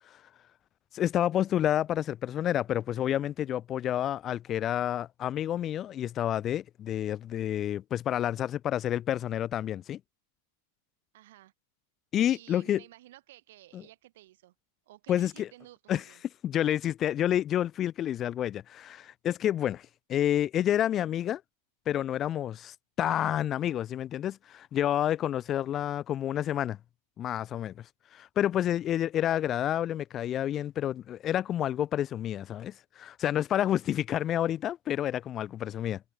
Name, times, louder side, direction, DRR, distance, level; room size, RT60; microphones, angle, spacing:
voice 1, 0.9-10.0 12.1-12.8 13.7-13.8 15.1-15.5 15.9-16.0 16.4-21.4 21.9-26.8 27.2-27.7 28.1-36.0, left 11 dB, 30° left, 0.4 m, -29 dB
voice 2, 11.1-11.5 12.2-14.5 14.9-16.2, right 15 dB, 55° right, 1.8 m, -53 dB
figure-of-eight pair, 90°, 0 cm